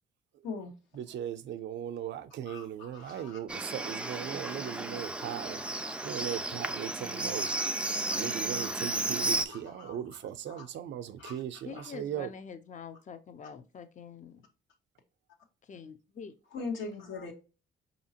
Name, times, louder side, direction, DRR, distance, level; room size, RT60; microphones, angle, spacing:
voice 1, 1.0-5.6 6.0-7.5 8.1-12.3, right 10 dB, 65° right, 0.5 m, -38 dB
voice 2, 2.4-3.4 3.8-4.2 4.4-6.4 7.4-7.7 8.1-8.2 8.5-8.8 9.5-10.7 11.2-11.9 16.5-17.3, left 4 dB, 70° left, 1.2 m, -44 dB
Livestock farm animals working animals, 3.5-9.5, right 2 dB, 5° right, 0.4 m, -33 dB
voice 3, 11.6-14.4 15.6-16.3, left 6 dB, 40° left, 0.6 m, -45 dB
4.9 x 2.8 x 2.7 m
cardioid pair, 90°, 20 cm